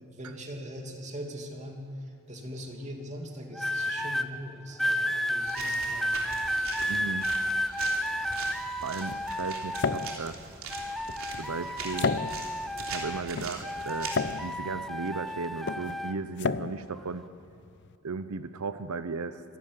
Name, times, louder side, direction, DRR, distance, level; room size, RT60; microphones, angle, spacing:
voice 1, 0.0-6.2, equal, 35° right, 2 dB, 2.7 m, -41 dB
sound 1, 3.6-4.3 4.8-10.3 10.7-13.3 13.6-16.2 16.9-17.2, equal, ahead, 0.6 m, -32 dB
sound 2, 5.4-14.3, right 4 dB, 70° right, 3.4 m, -42 dB
voice 2, 6.9-7.3 8.8-10.4 11.4-12.1 12.8-17.2 18.0-19.4, right 4 dB, 90° right, 11 dB, 0.7 m, -36 dB
sound 3, 8.1-17.9, left 4 dB, 55° left, 0.6 m, -35 dB
26.0 x 12.5 x 9.6 m, 2.4 s
head